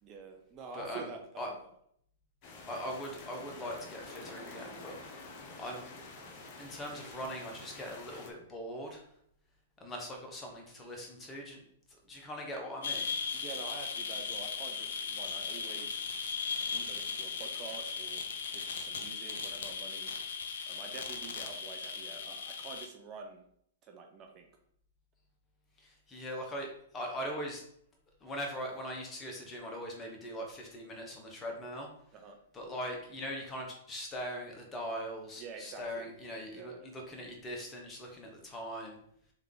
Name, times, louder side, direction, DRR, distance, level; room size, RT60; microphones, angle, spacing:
voice 1, 0.0-1.2 1.5-1.6 13.3-16.0 16.7-18.2 18.5-20.1 20.7-23.4 23.8-24.5 32.1-32.4 35.4-36.1 36.5-36.9, right 4 dB, 30° right, 4 dB, 0.6 m, -47 dB
voice 2, 0.7-1.1 1.4-1.5 2.7-5.9 6.6-9.1 9.8-11.6 12.1-13.2 25.8-27.6 28.2-31.9 32.5-39.0, equal, 20° left, 1 dB, 1.1 m, -41 dB
sound 1, 2.4-8.3, left 3 dB, 40° left, 0.9 m, -48 dB
sound 2, 12.8-22.9, left 5 dB, 65° left, 0.7 m, -37 dB
3.4 x 3.4 x 3.8 m, 0.68 s
hypercardioid pair, 120°, 0 cm